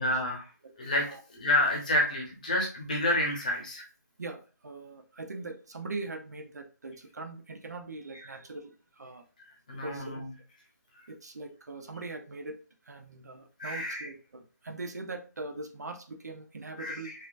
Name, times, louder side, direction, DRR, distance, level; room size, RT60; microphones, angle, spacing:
voice 1, 0.0-0.5 0.8-3.8 8.2-8.3 9.7-10.3 13.6-14.1 16.8-17.1, left 1 dB, 25° left, 0 dB, 0.9 m, -29 dB
voice 2, 4.2-9.2 9.7-10.1 11.1-12.6 12.8-17.1, right 3 dB, 65° right, 6 dB, 0.7 m, -41 dB
4.1 x 2.6 x 2.5 m, 0.35 s
hypercardioid pair, 175°, 10 cm